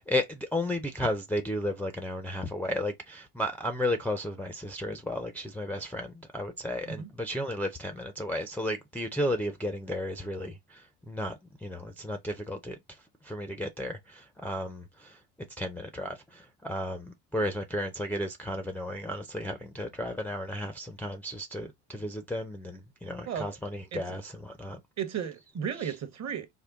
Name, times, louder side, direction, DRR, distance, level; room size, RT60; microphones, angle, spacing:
voice 1, 0.0-10.8 11.1-12.8 13.2-15.2 15.6-24.8 25.8-25.9, left 1 dB, 5° left, 0.4 m, -33 dB
voice 2, 23.0-23.6 23.9-24.0 25.0-26.5, right 8 dB, 40° right, 0.8 m, -35 dB
3.6 x 2.1 x 3.5 m
supercardioid pair, 85°, 42 cm